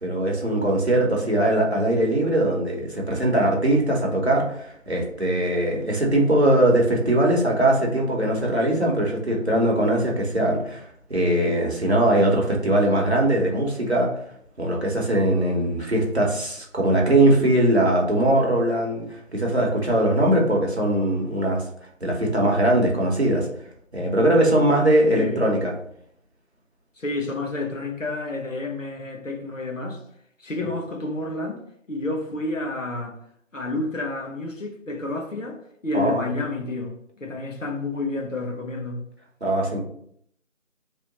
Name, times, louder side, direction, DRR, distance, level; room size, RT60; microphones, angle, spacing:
voice 1, 0.0-10.8 11.1-14.1 14.6-19.0 19.3-21.6 22.0-23.5 23.9-25.7 35.9-36.2 39.4-39.8, right 1 dB, 55° right, 1.0 m, -21 dB
voice 2, 25.0-25.5 27.0-30.0 30.4-31.6 31.9-33.2 33.5-35.6 35.8-39.0, left 2 dB, 70° left, 1.0 m, -30 dB
3.3 x 2.9 x 3.9 m
figure-of-eight pair, 180°, 40 cm